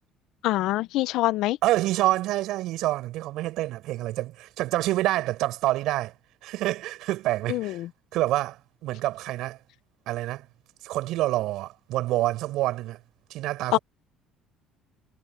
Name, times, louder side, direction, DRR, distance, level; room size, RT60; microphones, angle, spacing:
voice 1, 0.4-1.6 7.5-7.9 13.7-13.8, left 16 dB, 70° left, 0.6 m, -25 dB
voice 2, 1.6-6.1 6.4-7.8 8.1-9.6 10.1-10.5 10.8-13.0 13.3-13.8, right 16 dB, 70° right, 5.3 m, -27 dB
cardioid pair, 150°, 0 cm